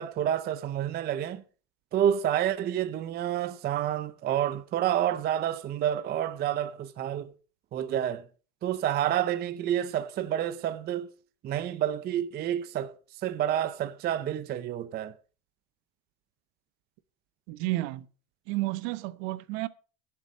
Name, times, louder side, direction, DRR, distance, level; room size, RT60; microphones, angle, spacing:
voice 1, 0.0-1.4 1.9-7.3 7.7-8.2 8.6-11.1 11.4-12.9 13.2-15.1, right 10 dB, 25° right, 0.5 m, -29 dB
voice 2, 17.5-18.0 18.5-19.7, right 18 dB, 55° right, 0.9 m, -31 dB
12.0 x 7.7 x 6.3 m
supercardioid pair, 150°, 40 cm